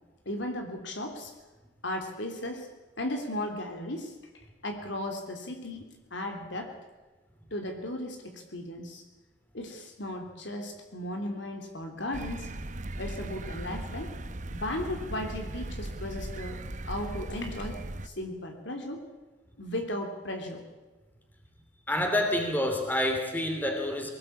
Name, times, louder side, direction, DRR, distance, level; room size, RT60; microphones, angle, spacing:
voice 1, 0.2-1.3 1.8-2.7 3.0-6.7 7.5-9.0 9.5-12.5 13.0-14.2 14.5-16.6 16.9-19.1 19.6-20.6, left 1 dB, 70° left, 4 dB, 3.1 m, -36 dB
sound 1, 12.1-18.1, right 1 dB, 40° right, 0.9 m, -38 dB
voice 2, 21.9-24.1, left 1 dB, 10° left, 4 dB, 3.0 m, -28 dB
23.5 x 19.0 x 8.6 m, 1.2 s
head